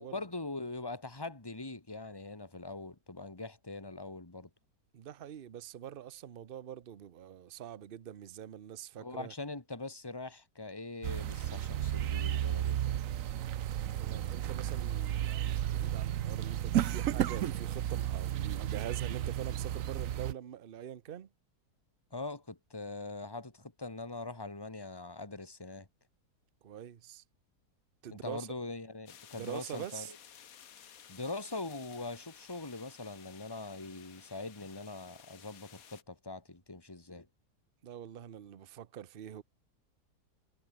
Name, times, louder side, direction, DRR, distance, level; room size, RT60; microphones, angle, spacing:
voice 1, 0.0-4.5 9.0-12.8 22.1-25.9 28.1-30.2 31.1-37.3, left 3 dB, 15° left, 2.4 m, -42 dB
voice 2, 4.9-9.3 14.0-21.3 26.6-27.2 28.0-28.5 29.3-30.1 37.8-39.4, right 10 dB, 45° right, 0.8 m, -44 dB
sound 1, 11.0-20.3, right 11 dB, 60° right, 1.1 m, -33 dB
sound 2, 29.1-36.0, left 8 dB, 60° left, 1.5 m, -55 dB
omnidirectional pair, 1.7 m